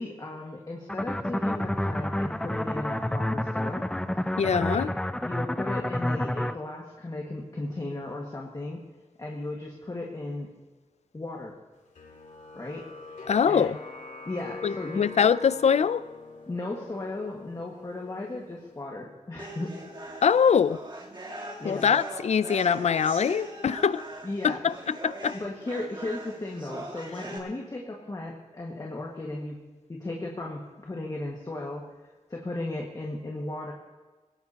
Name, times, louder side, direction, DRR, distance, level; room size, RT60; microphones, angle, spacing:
voice 1, 0.0-3.9 4.6-4.9 5.2-8.8 9.2-10.5 11.1-11.6 12.6-13.7 14.3-15.0 16.5-19.7 21.6-21.9 24.2-24.6 25.3-29.6 29.9-31.9 32.3-33.7, left 2 dB, 30° left, -1 dB, 1.8 m, -36 dB
sound 1, 0.9-6.5, left 1 dB, 5° left, 0.5 m, -29 dB
voice 2, 4.4-4.9 13.3-13.8 14.6-16.0 20.2-20.8 21.6-24.0 24.4-25.4, left 7 dB, 60° left, 16 dB, 0.5 m, -23 dB
sound 2, 11.9-18.8, left 3 dB, 90° left, 2.1 m, -44 dB
sound 3, 19.4-27.4, right 2 dB, 40° right, 3.3 m, -41 dB
22.5 x 18.0 x 2.9 m, 1.3 s
wide cardioid pair, 120°, 13 cm